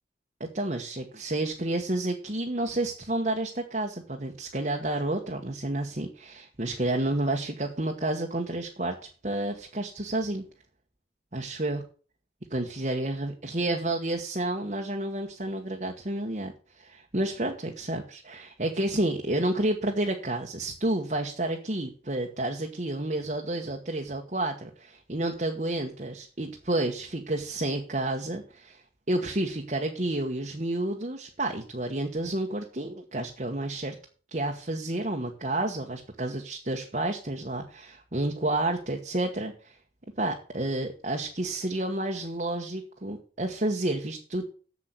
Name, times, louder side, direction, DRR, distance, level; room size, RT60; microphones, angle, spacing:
voice 1, 0.4-9.0 9.2-10.4 11.3-11.8 12.5-28.8 29.1-33.9 34.3-39.8 40.2-44.5, right 1 dB, 40° right, 1 dB, 1.3 m, -30 dB
8.1 x 7.4 x 7.8 m, 0.39 s
head